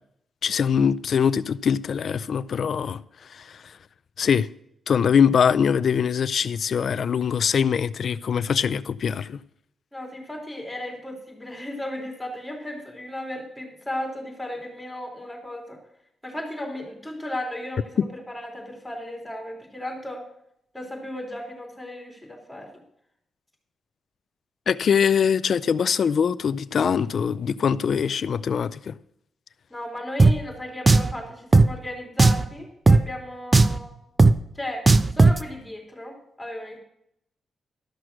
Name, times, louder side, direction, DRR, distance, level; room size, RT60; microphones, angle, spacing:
voice 1, 0.4-3.0 3.3-3.7 4.2-4.5 4.9-9.4 24.7-29.0, left 7 dB, 60° left, 0.4 m, -23 dB
voice 2, 9.9-15.8 16.2-18.0 18.3-20.2 20.7-22.7 29.7-33.9 34.6-34.9 35.1-36.8, left 1 dB, 5° left, 3.6 m, -35 dB
Drum, 30.2-30.3 30.9-31.1 31.5-31.7 32.2-32.5 32.9-33.0 33.5-33.8 34.2-34.3 34.9-35.4, right 3 dB, 30° right, 0.5 m, -15 dB
13.0 x 6.0 x 6.3 m
cardioid pair, 85°, 0 cm